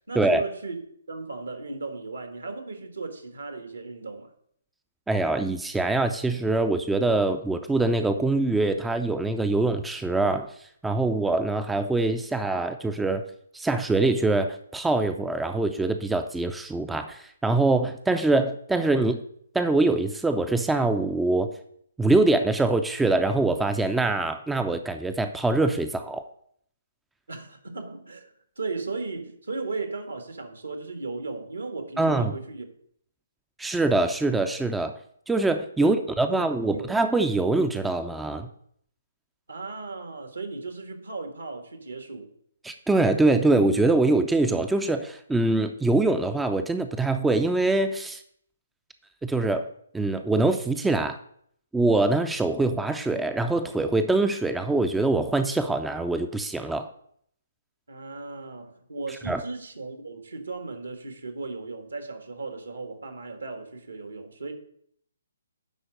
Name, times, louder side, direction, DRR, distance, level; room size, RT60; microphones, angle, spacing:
voice 1, 0.1-0.8 1.1-4.3 27.3-32.7 35.8-36.0 36.3-36.9 39.5-42.3 57.9-64.5, right 3 dB, 75° right, 1.5 m, -36 dB
voice 2, 5.1-10.5 10.8-13.2 13.5-19.2 19.5-21.5 22.0-26.2 32.0-32.4 33.6-35.0 35.3-38.5 42.6-48.2 49.2-49.7 49.9-51.2 51.7-56.9 59.3-59.4, right 2 dB, 5° right, 0.4 m, -24 dB
10.0 x 4.0 x 6.3 m
figure-of-eight pair, 135°, 0 cm